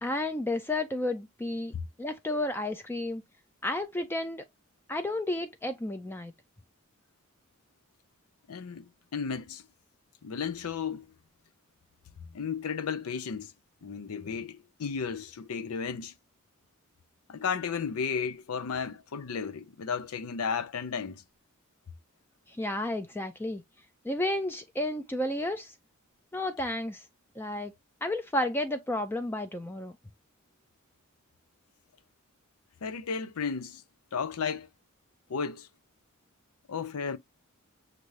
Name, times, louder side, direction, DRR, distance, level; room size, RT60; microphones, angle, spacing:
voice 1, 0.0-1.7 2.0-3.2 3.6-4.4 4.9-6.3 22.5-23.6 24.0-25.7 26.3-27.0 27.4-27.7 28.0-29.9, left 1 dB, 10° left, 0.3 m, -32 dB
voice 2, 8.5-9.6 10.2-11.1 12.3-13.5 13.8-16.1 17.3-21.2 32.8-33.8 34.1-34.7 35.3-35.7 36.7-37.2, left 6 dB, 80° left, 0.5 m, -34 dB
6.6 x 2.5 x 3.1 m
head